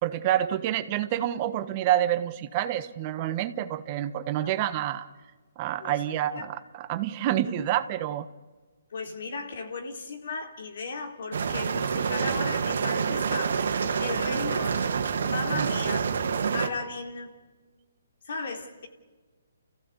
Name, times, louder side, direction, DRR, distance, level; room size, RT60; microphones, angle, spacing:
voice 1, 0.0-5.1 5.6-8.3 15.5-15.7, right 12 dB, 30° right, 1.2 m, -28 dB
voice 2, 8.9-14.9 15.2-16.0 16.5-17.4 18.2-18.9, left 4 dB, 60° left, 3.6 m, -36 dB
sound 1, 11.3-16.7, right 6 dB, 65° right, 1.9 m, -27 dB
30.0 x 15.5 x 8.2 m
hypercardioid pair, 150°, 0 cm